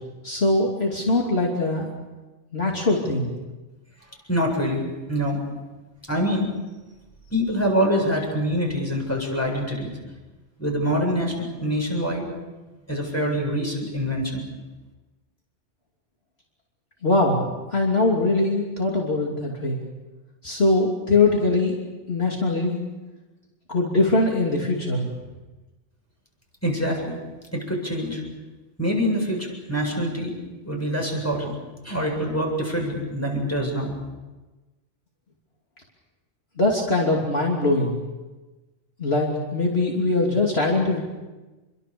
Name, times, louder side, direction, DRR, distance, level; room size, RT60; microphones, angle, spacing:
voice 1, 0.2-1.9 2.5-3.3 17.0-17.4 17.7-19.8 20.4-21.7 22.1-22.8 23.7-25.1 36.6-38.0 39.0-41.0, left 2 dB, 55° left, -1 dB, 3.2 m, -22 dB
voice 2, 4.3-5.4 6.1-6.5 7.3-9.9 10.6-12.3 12.9-14.4 26.6-27.2 27.5-28.2 28.8-30.3 30.6-31.5 31.8-34.0, equal, 10° left, 0 dB, 7.8 m, -25 dB
28.5 x 23.5 x 7.0 m, 1.2 s
omnidirectional pair, 1.3 m